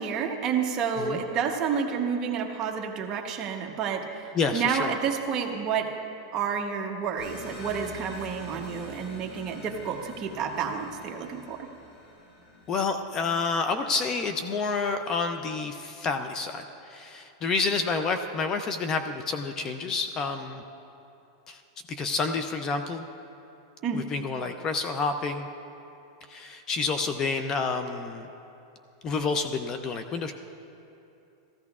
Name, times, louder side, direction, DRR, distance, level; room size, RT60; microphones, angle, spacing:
voice 1, 0.0-4.3 4.5-5.9 6.3-11.7 23.8-24.0, right 6 dB, 30° right, 2 dB, 0.9 m, -29 dB
voice 2, 4.3-4.9 12.7-20.6 21.5-21.6 22.0-23.0 23.9-25.5 26.3-28.3 29.0-30.3, left 4 dB, 25° left, 7 dB, 0.4 m, -29 dB
sound 1, 7.2-13.4, left 3 dB, 80° left, 2.6 m, -46 dB
16.0 x 14.0 x 2.4 m, 2.8 s
supercardioid pair, 155°, 2 cm